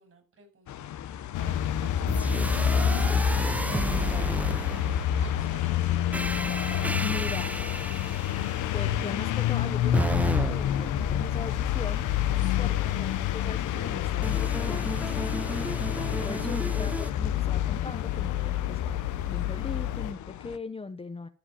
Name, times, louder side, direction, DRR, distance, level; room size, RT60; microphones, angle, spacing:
voice 1, 0.0-2.9 3.4-4.3 5.2-6.0 12.4-13.0 16.3-16.7, right 4 dB, 50° right, 6.0 m, -52 dB
sound 1, 0.7-20.6, left 11 dB, 70° left, 0.9 m, -41 dB
sound 2, 1.3-20.1, left 10 dB, 85° left, 1.1 m, -28 dB
sound 3, 2.1-5.3 6.1-8.6 9.9-12.0 14.2-17.1, right 1 dB, 5° right, 0.5 m, -32 dB
voice 2, 3.7-4.5 7.0-7.5 8.7-12.1 12.6-15.2 16.2-21.3, left 3 dB, 20° left, 0.9 m, -39 dB
13.5 x 5.0 x 7.7 m
cardioid pair, 90°, 30 cm